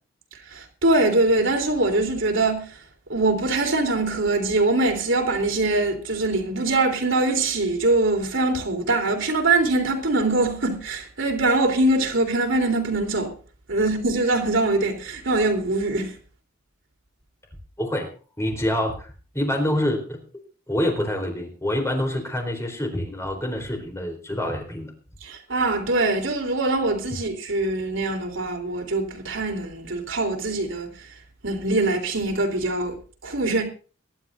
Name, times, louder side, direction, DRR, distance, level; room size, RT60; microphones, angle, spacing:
voice 1, 0.5-2.8 3.1-13.4 13.7-16.2 25.2-31.1 31.4-33.0 33.2-33.6, right 2 dB, 65° right, 3.6 m, -23 dB
voice 2, 17.8-18.1 18.4-20.2 20.7-24.9, left 1 dB, 15° left, 4.0 m, -26 dB
23.0 x 12.0 x 2.7 m
head